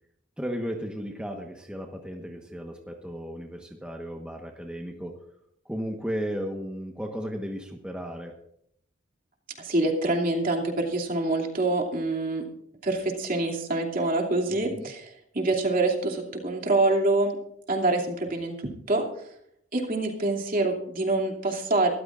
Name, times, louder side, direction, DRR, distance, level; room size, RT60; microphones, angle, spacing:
voice 1, 0.4-5.2 5.6-8.3 14.7-14.9, equal, 5° right, 1 dB, 1.2 m, -35 dB
voice 2, 9.6-12.4 12.8-17.4 17.7-19.0 19.7-21.9, right 2 dB, 45° right, 1 dB, 2.7 m, -26 dB
23.0 x 14.0 x 2.5 m, 0.71 s
head